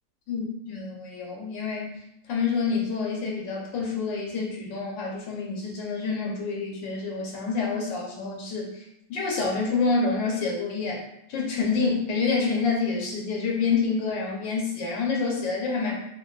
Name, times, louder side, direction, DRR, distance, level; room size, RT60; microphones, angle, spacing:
voice 1, 0.3-1.9 2.3-11.0 11.3-16.0, left 4 dB, 80° left, -1 dB, 1.4 m, -27 dB
3.4 x 2.4 x 2.3 m, 0.78 s
omnidirectional pair, 2.0 m